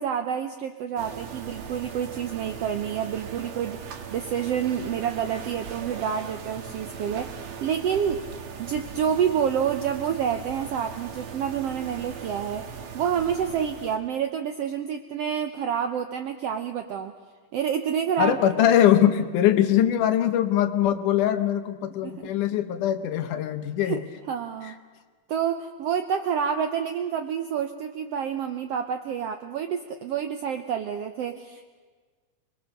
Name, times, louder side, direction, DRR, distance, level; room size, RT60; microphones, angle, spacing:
voice 1, 0.0-8.2 8.6-12.7 12.9-17.1 17.5-18.4 22.0-22.1 23.8-24.0 24.3-24.8 25.3-31.7, right 8 dB, 75° right, 7 dB, 1.4 m, -28 dB
sound 1, 1.0-14.0, right 7 dB, 50° right, 1.9 m, -39 dB
voice 2, 18.2-24.0 24.6-24.7, left 10 dB, 75° left, 9 dB, 2.5 m, -22 dB
26.0 x 21.5 x 6.5 m, 1.4 s
omnidirectional pair, 3.7 m